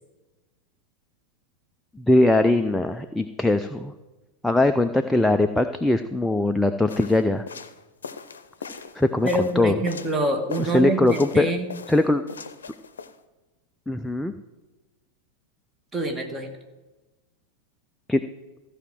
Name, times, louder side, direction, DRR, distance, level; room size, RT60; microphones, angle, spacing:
voice 1, 2.0-3.9 4.4-7.4 8.9-9.8 10.6-11.5 11.9-12.2 13.9-14.3 18.1-18.2, left 2 dB, 5° left, 7 dB, 0.5 m, -21 dB
sound 1, 6.9-10.2 10.5-11.4 11.7-13.2, left 5 dB, 70° left, 0.7 m, -38 dB
voice 2, 9.2-11.6 15.9-16.5, right 1 dB, 15° right, 4 dB, 1.7 m, -26 dB
14.5 x 5.0 x 7.5 m, 1.1 s
figure-of-eight pair, 90°, 0 cm